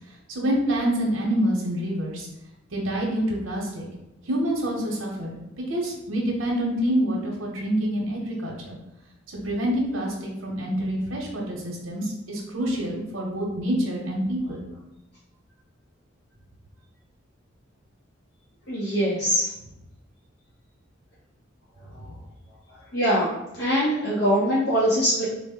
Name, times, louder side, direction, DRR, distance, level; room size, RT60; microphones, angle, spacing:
voice 1, 0.3-2.3 2.7-3.9 4.2-8.8 9.3-14.6, equal, 90° right, -2 dB, 0.8 m, -27 dB
voice 2, 18.7-19.5 22.0-22.1 22.9-23.3 23.6-25.3, equal, 55° left, -9 dB, 0.9 m, -22 dB
3.8 x 2.1 x 3.6 m, 0.95 s
head